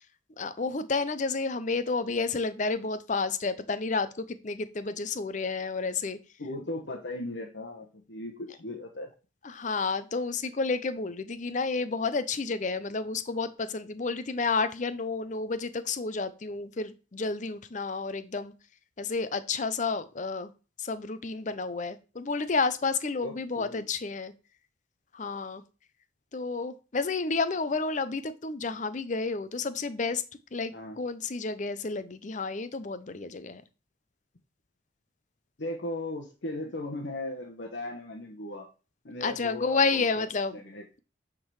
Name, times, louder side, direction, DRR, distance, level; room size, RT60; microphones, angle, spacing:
voice 1, 0.4-6.2 9.4-18.5 19.0-20.5 20.8-24.3 25.1-25.6 26.3-30.2 30.5-33.6 39.2-40.6, left 4 dB, 40° left, 13 dB, 0.5 m, -30 dB
voice 2, 6.4-9.1 23.2-23.9 30.7-31.0 35.6-38.7 39.0-40.2 40.5-40.8, left 1 dB, 70° left, 1 dB, 1.0 m, -37 dB
8.9 x 3.8 x 4.7 m, 0.33 s
head